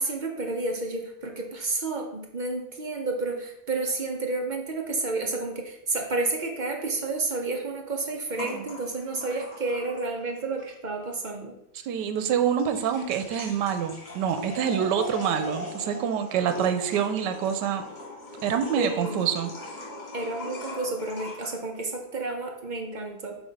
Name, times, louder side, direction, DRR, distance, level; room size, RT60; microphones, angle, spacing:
voice 1, 0.0-11.5 18.7-19.2 20.1-23.4, right 3 dB, 45° right, 1 dB, 0.6 m, -30 dB
sound 1, 8.3-10.3 10.6-10.7 12.4-21.6, left 2 dB, 40° left, 1.7 m, -40 dB
voice 2, 11.8-17.8 18.4-19.5, right 8 dB, 85° right, 9 dB, 1.3 m, -26 dB
6.2 x 3.1 x 5.2 m, 0.80 s
omnidirectional pair, 1.8 m